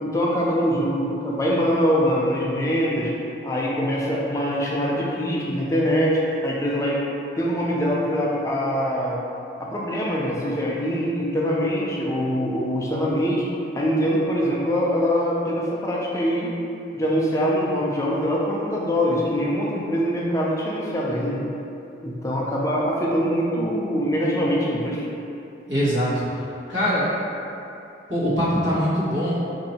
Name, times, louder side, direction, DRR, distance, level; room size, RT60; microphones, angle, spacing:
voice 1, 0.0-3.1 3.4-7.0 7.4-9.2 9.6-13.4 13.7-16.5 16.9-21.4 22.0-25.1, equal, 15° left, -5 dB, 0.4 m, -23 dB
voice 2, 25.7-26.2 26.7-27.1 28.1-29.4, equal, 85° right, -11 dB, 1.2 m, -22 dB
2.6 x 2.6 x 4.1 m, 2.7 s
head